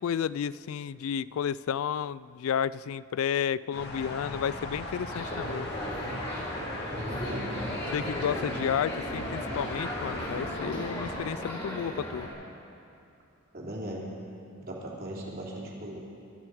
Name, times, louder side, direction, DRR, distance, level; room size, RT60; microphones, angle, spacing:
voice 1, 0.0-5.7 7.9-12.3, left 8 dB, 75° left, 19 dB, 0.3 m, -31 dB
sound 1, 3.7-11.3, left 1 dB, 50° left, 2.0 m, -38 dB
sound 2, 5.1-12.3, equal, 25° left, 3.4 m, -36 dB
voice 2, 6.9-7.6 13.5-14.1 14.6-16.0, right 1 dB, 45° right, -3 dB, 3.2 m, -38 dB
23.5 x 12.5 x 4.9 m, 2.6 s
head